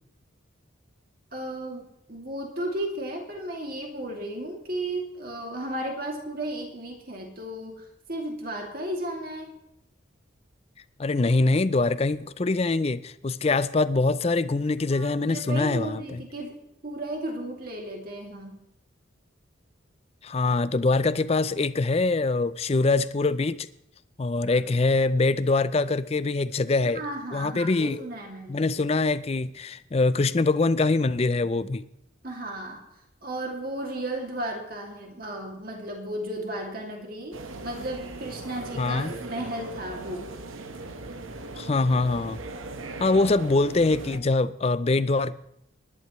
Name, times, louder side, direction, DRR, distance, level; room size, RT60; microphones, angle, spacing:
voice 1, 1.3-9.5 14.9-18.6 24.5-24.6 26.8-28.6 32.2-32.8 33.2-40.3, right 1 dB, 45° right, 2.5 m, -34 dB
voice 2, 11.0-16.2 20.2-23.7 24.2-27.0 27.3-28.0 28.5-31.8 38.8-39.1 41.6-42.4 43.0-45.3, left 3 dB, 30° left, 0.4 m, -24 dB
sound 1, 37.3-44.2, right 2 dB, 90° right, 1.2 m, -39 dB
20.0 x 11.0 x 3.1 m
head